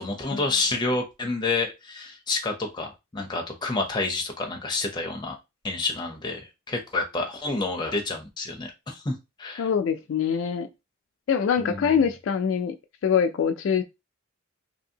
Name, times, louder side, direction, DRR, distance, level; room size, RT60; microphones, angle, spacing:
voice 1, 0.0-5.4 5.6-9.7 11.6-12.1, left 3 dB, 20° left, 0.6 m, -29 dB
voice 2, 9.6-10.7 11.3-12.8 13.0-13.8, left 7 dB, 70° left, 0.3 m, -24 dB
2.7 x 2.6 x 2.7 m
head